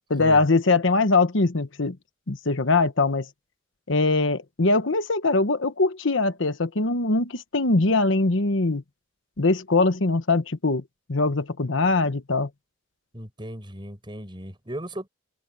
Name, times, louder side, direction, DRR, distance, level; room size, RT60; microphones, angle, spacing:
voice 1, 0.1-2.0 2.3-3.3 3.9-8.8 9.4-10.8 11.1-12.5, left 3 dB, 65° left, 1.1 m, -22 dB
voice 2, 13.1-15.1, right 1 dB, 25° right, 5.8 m, -36 dB
head